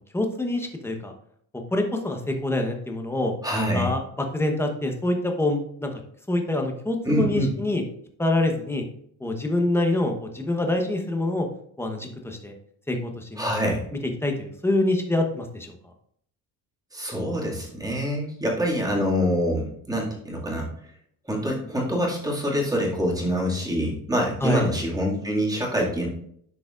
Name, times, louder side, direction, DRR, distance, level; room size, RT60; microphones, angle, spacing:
voice 1, 0.1-1.1 1.7-3.3 3.7-5.9 6.3-7.8 8.2-8.8 9.2-11.5 11.8-12.5 12.9-13.4 14.2-15.7 24.4-24.7, left 1 dB, 5° left, 3 dB, 1.0 m, -25 dB
voice 2, 3.4-3.9 7.0-7.5 13.4-13.8 16.9-20.7 21.3-26.1, equal, 10° right, -3 dB, 2.2 m, -25 dB
12.0 x 4.8 x 2.5 m, 0.67 s
cardioid pair, 125°, 36 cm